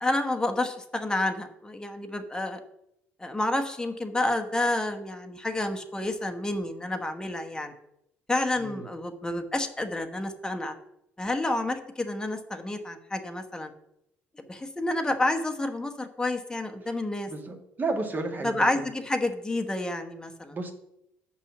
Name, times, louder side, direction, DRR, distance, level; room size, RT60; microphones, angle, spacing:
voice 1, 0.0-2.6 3.2-7.7 8.3-10.7 11.2-13.7 14.5-17.3 18.4-20.5, left 2 dB, 10° left, 5 dB, 1.2 m, -29 dB
voice 2, 17.3-18.9 20.5-20.7, right 3 dB, 25° right, 3 dB, 1.8 m, -32 dB
6.9 x 5.6 x 7.0 m, 0.80 s
figure-of-eight pair, 55°, 7 cm